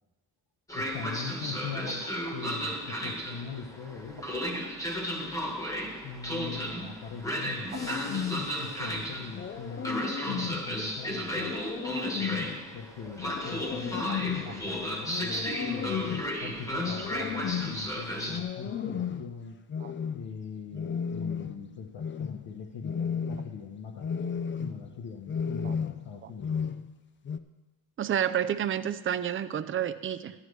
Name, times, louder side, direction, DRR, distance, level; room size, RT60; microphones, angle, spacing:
voice 1, 0.7-4.3 6.0-8.2 8.5-11.6 12.2-19.6 20.1-24.1 24.6-26.6, left 6 dB, 75° left, 1 dB, 1.1 m, -41 dB
Train, 0.7-18.4, equal, 10° left, 1.3 m, -34 dB
sound 1, 7.7-8.6 9.3-10.7 11.3-12.6 13.2-14.5 15.0-16.3 16.7-17.8 18.3-19.3 19.7-20.3 20.7-21.6 22.0-22.4 22.8-23.6 24.0-24.8 25.3-26.1 26.4-26.9 27.2-27.4, left 7 dB, 30° left, 0.4 m, -34 dB
voice 2, 28.0-30.3, right 9 dB, 30° right, 11 dB, 0.4 m, -30 dB
15.0 x 11.5 x 3.2 m, 1.1 s
cardioid pair, 165°, 40 cm